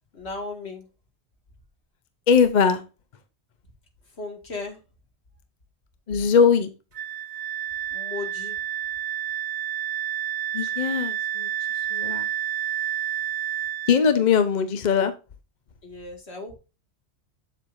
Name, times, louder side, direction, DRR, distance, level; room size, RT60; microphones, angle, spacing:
voice 1, 0.1-0.9 4.1-4.8 7.9-8.6 15.8-16.5, left 3 dB, 70° left, 2 dB, 2.4 m, -36 dB
voice 2, 2.3-2.8 6.1-6.7 10.5-11.5 11.9-12.3 13.9-15.1, left 6 dB, 45° left, 9 dB, 0.8 m, -20 dB
Wind instrument woodwind instrument, 6.9-14.0, right 11 dB, 50° right, 0.7 m, -29 dB
8.1 x 7.5 x 2.6 m, 0.30 s
omnidirectional pair, 1.2 m